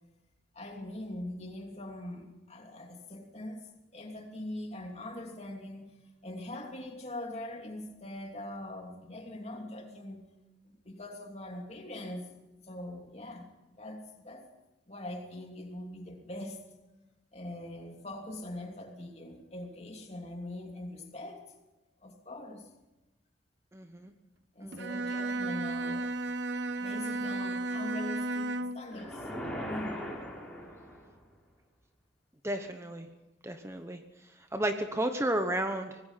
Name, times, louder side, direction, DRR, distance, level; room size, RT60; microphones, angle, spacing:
voice 1, 0.5-5.9 6.2-10.2 10.7-12.3 12.6-14.5 14.9-16.6 17.3-21.4 22.0-22.7 24.5-26.2 26.8-29.3 29.5-30.0, left 1 dB, 35° left, 3 dB, 3.0 m, -42 dB
voice 2, 23.7-24.1 24.6-24.8 32.4-33.1 33.4-34.0 34.5-36.0, right 1 dB, 15° right, 7 dB, 0.9 m, -32 dB
Bowed string instrument, 24.7-28.9, right 2 dB, 70° right, 0.7 m, -33 dB
sound 1, 28.9-31.2, equal, 5° left, 4.6 m, -39 dB
25.0 x 19.0 x 5.8 m, 1.0 s
head